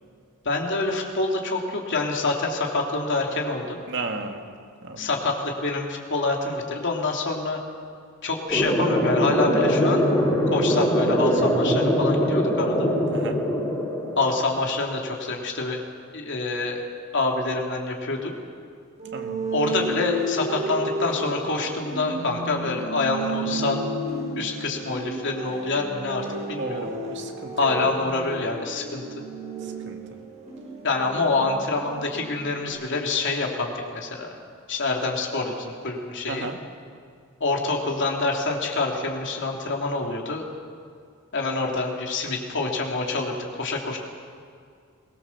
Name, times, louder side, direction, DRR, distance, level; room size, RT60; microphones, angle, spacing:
voice 1, 0.4-3.8 5.0-7.6 8.2-10.1 10.5-12.9 14.2-15.8 16.1-16.8 17.1-18.3 19.5-23.8 24.4-26.9 27.6-29.0 30.8-34.3 34.7-36.5 37.4-40.4 41.3-44.0, left 3 dB, 60° left, 1 dB, 3.0 m, -26 dB
voice 2, 3.9-4.4 4.8-5.1 13.1-13.4 19.1-19.4 26.6-27.9 29.6-30.0 36.3-36.6, right 3 dB, 60° right, 4 dB, 2.1 m, -34 dB
sound 1, 8.5-14.5, equal, 15° left, 4.0 m, -22 dB
sound 2, 19.0-32.7, right 2 dB, 35° right, 6.3 m, -33 dB
22.5 x 19.0 x 7.3 m, 2.2 s
head